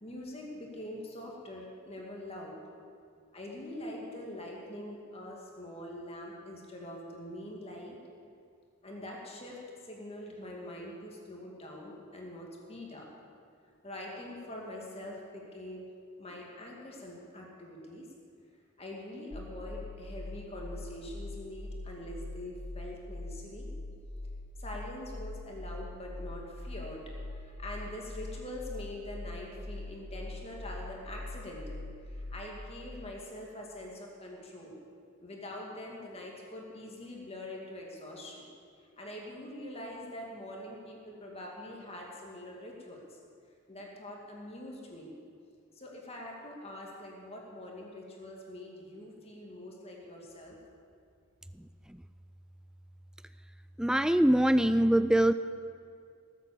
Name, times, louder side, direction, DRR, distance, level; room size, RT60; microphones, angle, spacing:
voice 1, 0.0-2.6 3.3-8.0 8.8-13.1 13.8-15.9 16.2-18.1 18.8-23.7 24.6-34.8 35.2-38.5 39.0-43.2 43.7-45.1 45.7-50.6, left 1 dB, 30° left, -1 dB, 2.3 m, -44 dB
sound 1, 19.3-32.7, left 2 dB, 80° left, 1.0 m, -43 dB
voice 2, 51.5-52.0 53.8-55.3, right 1 dB, 5° right, 12 dB, 0.3 m, -24 dB
18.5 x 8.1 x 7.1 m, 2.3 s
head